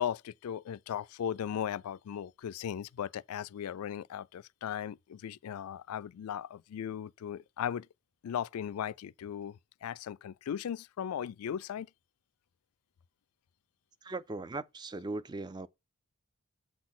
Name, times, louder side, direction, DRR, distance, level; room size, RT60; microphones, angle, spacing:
voice 1, 0.0-7.9 8.2-11.9, left 9 dB, 85° left, 0.3 m, -37 dB
voice 2, 14.0-15.7, right 3 dB, 20° right, 0.3 m, -39 dB
8.0 x 4.1 x 6.0 m
head